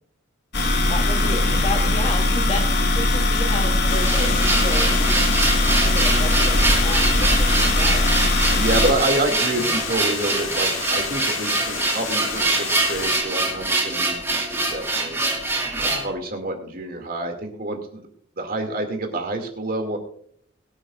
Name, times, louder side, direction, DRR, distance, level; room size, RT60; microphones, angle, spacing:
sound 1, 0.5-8.9, left 2 dB, 50° left, 1.5 m, -20 dB
voice 1, 0.9-5.2 5.7-8.0 8.9-9.1 9.6-9.7 10.5-10.7 15.8-16.1, left 1 dB, 30° left, 3 dB, 2.4 m, -32 dB
Water, 3.9-13.2, left 6 dB, 85° left, 2.1 m, -31 dB
sound 2, 4.0-16.1, right 2 dB, 10° right, 2.0 m, -24 dB
voice 2, 8.5-15.2 15.8-18.0 18.4-20.0, right 2 dB, 45° right, 4 dB, 2.3 m, -27 dB
22.5 x 9.0 x 2.5 m, 0.64 s
head